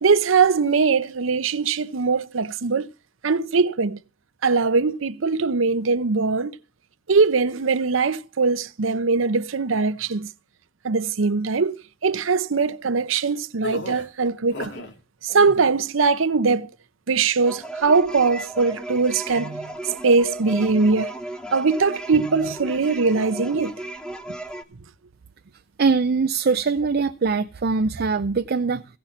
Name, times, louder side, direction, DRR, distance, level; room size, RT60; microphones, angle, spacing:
voice 1, 0.0-2.9 3.2-4.0 4.4-6.6 7.1-10.3 10.8-11.8 12.0-14.7 15.2-16.7 17.1-21.1 21.5-23.7, right 4 dB, 90° right, 0.7 m, -21 dB
sound 1, 13.6-14.9 15.3-15.8, left 2 dB, 65° left, 2.2 m, -34 dB
sound 2, 17.5-24.6, right 1 dB, 5° left, 1.1 m, -35 dB
voice 2, 25.8-28.9, right 4 dB, 55° right, 0.5 m, -22 dB
16.5 x 5.8 x 7.1 m
head